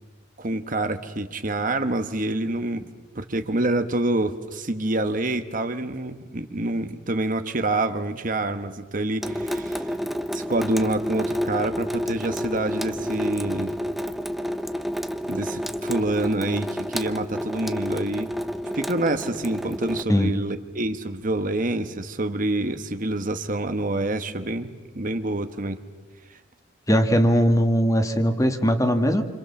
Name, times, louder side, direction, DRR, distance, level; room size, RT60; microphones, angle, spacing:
voice 1, 0.4-2.8 3.1-9.9 10.3-13.7 15.3-18.3 18.7-25.8, right 2 dB, 45° right, 8 dB, 1.3 m, -27 dB
Water tap faucet / Sink (filling or washing) / Drip, 9.2-20.0, equal, ahead, 0.9 m, -30 dB
voice 2, 26.9-29.2, equal, 15° left, 6 dB, 1.8 m, -20 dB
28.5 x 26.0 x 7.2 m, 1.3 s
head